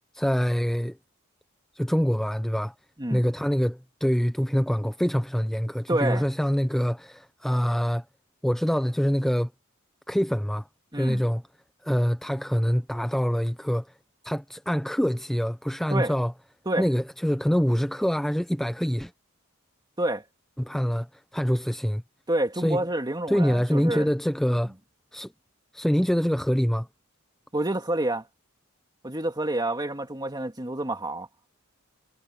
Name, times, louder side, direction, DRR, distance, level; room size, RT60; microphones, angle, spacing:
voice 1, 0.1-1.0 1.7-2.7 3.1-8.0 8.4-9.5 10.1-10.7 10.9-11.4 11.8-13.9 14.2-16.3 16.8-19.1 20.6-21.1 21.3-22.0 22.6-22.8 23.3-24.7 25.1-25.3 25.7-26.9, equal, ahead, 0.5 m, -25 dB
voice 2, 5.9-6.2 10.9-11.2 15.9-16.1 16.7-16.9 20.0-20.2 22.3-24.1 27.5-28.3 29.0-31.3, right 1 dB, 20° right, 2.2 m, -28 dB
head